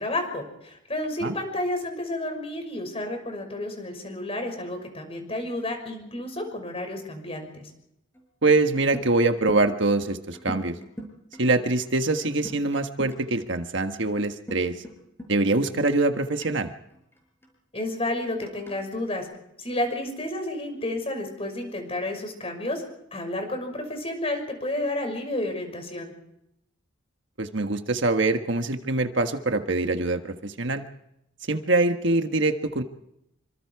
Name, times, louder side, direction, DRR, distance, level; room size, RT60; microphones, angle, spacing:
voice 1, 0.0-7.6 17.7-19.3 19.6-22.8 23.1-26.1, left 1 dB, 30° left, 5 dB, 6.0 m, -31 dB
sound 1, 8.1-8.2 8.5-9.1 9.4-13.5 14.5-14.9 15.2-15.3 15.9-16.0 16.4-17.5 18.4-19.2, equal, 10° left, 6.3 m, -40 dB
voice 2, 8.4-10.7 11.4-14.7 15.3-16.7 27.4-30.8 31.5-32.8, right 2 dB, 60° right, 6 dB, 1.5 m, -24 dB
27.5 x 25.5 x 4.8 m, 0.80 s
head